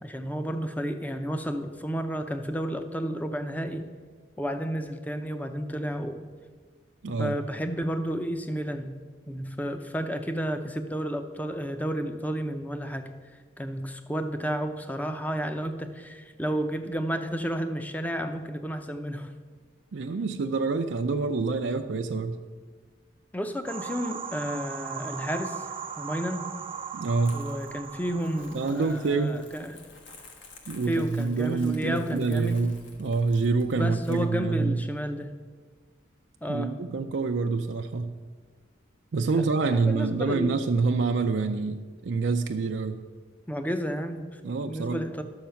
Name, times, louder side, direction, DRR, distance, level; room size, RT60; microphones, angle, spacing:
voice 1, 0.0-3.9 4.4-6.2 7.2-9.0 9.3-13.2 13.6-19.3 23.3-25.7 26.0-26.5 27.3-29.8 30.9-32.6 33.8-35.3 36.4-36.7 39.3-40.6 43.5-44.4 44.6-45.2, equal, 10° left, 8 dB, 0.6 m, -31 dB
voice 2, 7.0-7.4 19.9-22.4 26.9-27.4 28.5-29.4 30.7-34.8 36.5-38.1 39.1-43.0 44.4-45.0, right 4 dB, 70° right, 5 dB, 0.5 m, -27 dB
sound 1, 23.7-29.4, right 7 dB, 30° right, 0.7 m, -38 dB
Crumpling crinkling, 27.2-34.2, left 3 dB, 70° left, 1.6 m, -52 dB
11.5 x 7.2 x 5.7 m, 1.5 s
head